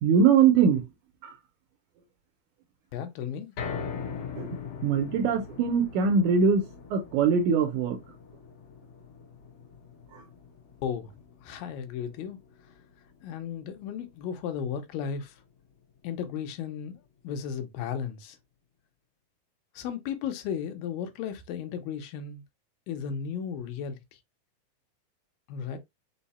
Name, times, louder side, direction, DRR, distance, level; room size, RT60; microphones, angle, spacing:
voice 1, 0.0-0.8 1.2-1.3 4.1-8.0 10.1-10.2, right 6 dB, 75° right, 1.9 m, -23 dB
voice 2, 2.9-3.5 10.8-11.1 11.4-12.4 13.2-15.4 16.0-18.4 19.7-22.4 22.9-24.2 25.5-25.8, left 7 dB, 80° left, 2.4 m, -35 dB
sound 1, 3.6-15.8 16.2-16.3 16.8-16.9, left 6 dB, 60° left, 1.6 m, -42 dB
5.6 x 2.0 x 4.1 m
omnidirectional pair, 4.0 m